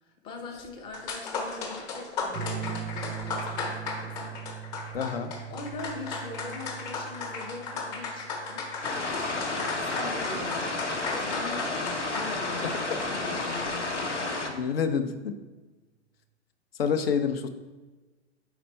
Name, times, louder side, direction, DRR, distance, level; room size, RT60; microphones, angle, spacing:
voice 1, 0.0-4.3 5.5-14.4, left 3 dB, 15° left, 3 dB, 0.6 m, -42 dB
sound 1, 0.6-0.7 0.9-13.9, left 4 dB, 35° left, 1.1 m, -36 dB
sound 2, 2.3-11.4 12.9-13.4, right 9 dB, 30° right, 0.5 m, -42 dB
voice 2, 4.9-5.3 14.6-15.4 16.8-17.5, left 6 dB, 55° left, 9 dB, 0.7 m, -27 dB
sound 3, 8.8-14.5, left 2 dB, 85° left, 1.0 m, -31 dB
5.0 x 4.5 x 4.2 m, 1.2 s
figure-of-eight pair, 110°, 35 cm